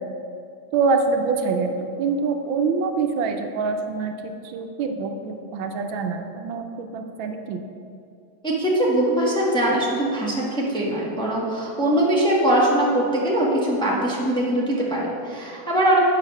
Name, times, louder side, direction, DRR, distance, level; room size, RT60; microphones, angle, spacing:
voice 1, 0.7-7.6, right 4 dB, 80° right, 5 dB, 1.5 m, -25 dB
voice 2, 8.4-16.0, right 1 dB, 5° left, -5 dB, 1.0 m, -21 dB
8.0 x 5.9 x 5.8 m, 2.5 s
omnidirectional pair, 2.1 m